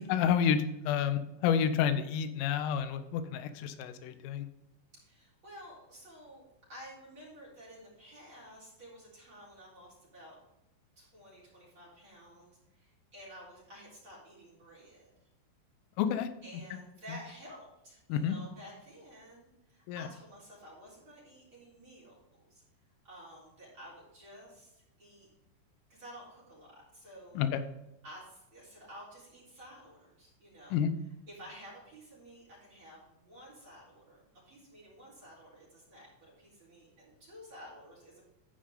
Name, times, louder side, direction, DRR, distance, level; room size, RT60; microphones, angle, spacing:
voice 1, 0.1-4.5 16.0-16.3 18.1-18.4 19.9-20.1 27.4-27.6 30.7-30.9, left 8 dB, 90° left, 10 dB, 3.3 m, -29 dB
voice 2, 5.0-6.4 6.7-10.4 11.0-15.1 16.4-22.2 22.5-22.6 23.0-25.3 25.9-27.4 28.0-30.8 31.3-38.2, equal, 30° right, -6 dB, 4.1 m, -52 dB
14.0 x 5.0 x 3.8 m, 0.90 s
omnidirectional pair, 5.6 m